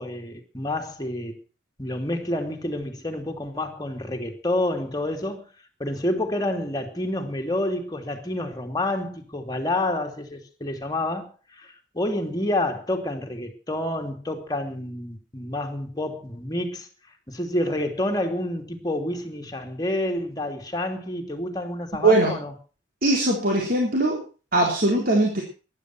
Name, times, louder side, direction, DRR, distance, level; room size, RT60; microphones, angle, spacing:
voice 1, 0.0-1.4 1.8-5.4 5.8-16.9 17.3-22.5, left 1 dB, 20° left, 2.8 m, -28 dB
voice 2, 22.0-22.4 23.0-24.2 24.5-25.4, right 2 dB, 55° right, 3.9 m, -20 dB
15.0 x 11.5 x 6.1 m
head